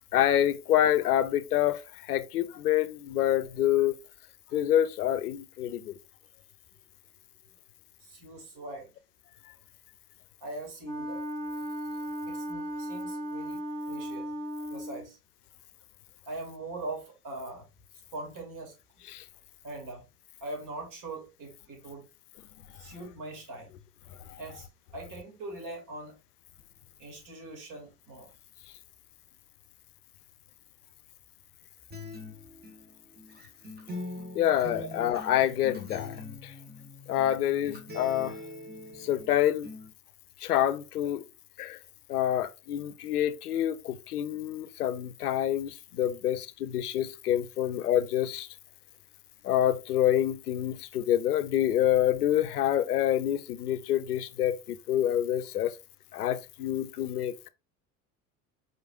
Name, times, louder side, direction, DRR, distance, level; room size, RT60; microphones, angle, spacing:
voice 1, 0.1-4.0 4.5-5.9 19.1-19.2 24.3-24.4 34.3-36.5 37.1-38.4 39.0-39.7 40.4-41.2 41.6-41.8 42.1-48.5 49.4-55.8 56.1-57.5, left 11 dB, 80° left, 0.5 m, -27 dB
voice 2, 8.0-8.9 10.4-11.3 12.3-14.3 14.7-15.2 16.3-17.7 18.1-18.7 19.6-20.1 20.4-22.1 22.7-23.7 24.4-24.7 24.9-26.2 27.0-28.3, right 2 dB, 45° right, 2.4 m, -41 dB
Wind instrument woodwind instrument, 10.8-15.1, equal, 15° left, 2.6 m, -36 dB
Acoustic guitar, 31.9-39.9, left 1 dB, 20° right, 1.6 m, -43 dB
4.8 x 4.1 x 2.4 m
figure-of-eight pair, 70°, 45 cm